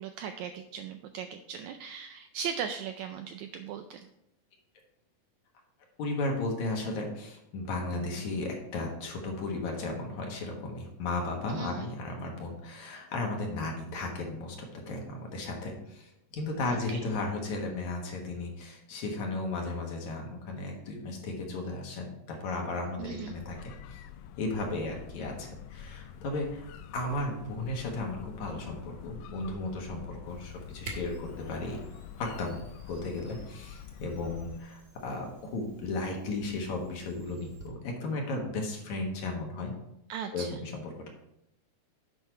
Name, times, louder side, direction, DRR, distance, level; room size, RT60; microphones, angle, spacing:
voice 1, 0.0-4.0 11.5-11.9 16.7-17.0 23.0-23.4 40.1-40.6, right 7 dB, 85° right, 7 dB, 1.6 m, -38 dB
voice 2, 6.0-24.0 24.4-26.7 26.9-31.8 32.2-32.6 32.9-39.7 40.3-41.1, left 2 dB, 65° left, 1 dB, 2.5 m, -35 dB
sound 1, 23.0-34.6, left 9 dB, 85° left, 2.2 m, -47 dB
Camera, 30.3-37.7, right 2 dB, 35° right, 1.8 m, -50 dB
8.2 x 5.5 x 4.5 m, 0.81 s
omnidirectional pair, 3.8 m